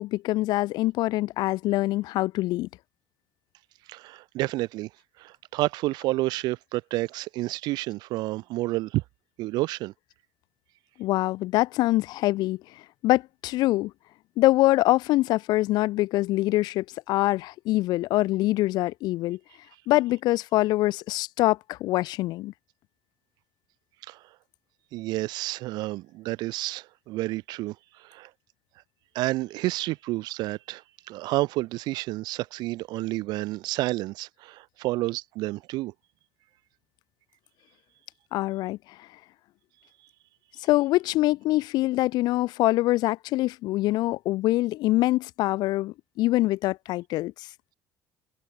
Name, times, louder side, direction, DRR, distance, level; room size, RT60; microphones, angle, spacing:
voice 1, 0.0-2.7 11.0-12.6 13.0-13.9 14.4-19.4 19.9-22.5 38.3-38.8 40.6-47.3, left 17 dB, 75° left, 1.8 m, -24 dB
voice 2, 3.9-4.9 5.2-9.0 9.4-9.9 24.1-24.2 24.9-28.3 29.1-30.8 31.1-35.9, right 18 dB, 75° right, 5.7 m, -30 dB
supercardioid pair, 75°, 7 cm